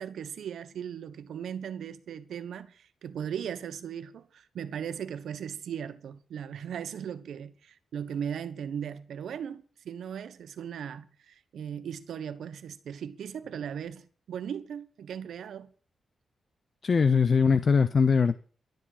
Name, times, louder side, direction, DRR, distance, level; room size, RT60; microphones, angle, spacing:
voice 1, 0.0-15.7, right 8 dB, 80° right, 1.2 m, -38 dB
voice 2, 16.8-18.4, left 5 dB, 45° left, 0.6 m, -21 dB
12.0 x 7.4 x 10.0 m
wide cardioid pair, 125°, 0 cm